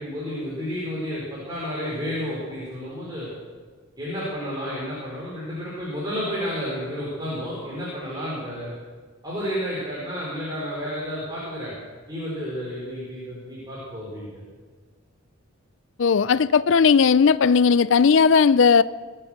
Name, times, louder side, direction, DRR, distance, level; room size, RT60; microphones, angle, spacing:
voice 1, 0.0-3.3 4.0-8.7 9.2-11.7 12.1-14.4, equal, 20° right, 4.9 m, -31 dB
voice 2, 16.0-18.8, left 5 dB, 60° left, 0.4 m, -17 dB
24.5 x 8.9 x 6.5 m
head